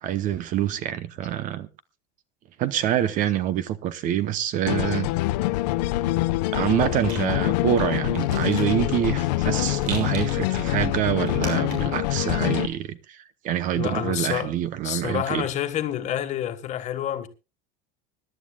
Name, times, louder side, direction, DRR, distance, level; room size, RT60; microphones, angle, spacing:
voice 1, 0.0-1.7 2.6-5.1 6.5-15.5, right 11 dB, 40° right, 0.8 m, -26 dB
sound 1, 4.7-12.7, left 16 dB, 90° left, 1.1 m, -25 dB
Rattle, 5.9-12.0, right 5 dB, 75° right, 6.8 m, -42 dB
voice 2, 13.7-14.6 14.8-17.3, left 11 dB, 35° left, 1.5 m, -28 dB
25.5 x 11.5 x 2.3 m
cardioid pair, 160°, 21 cm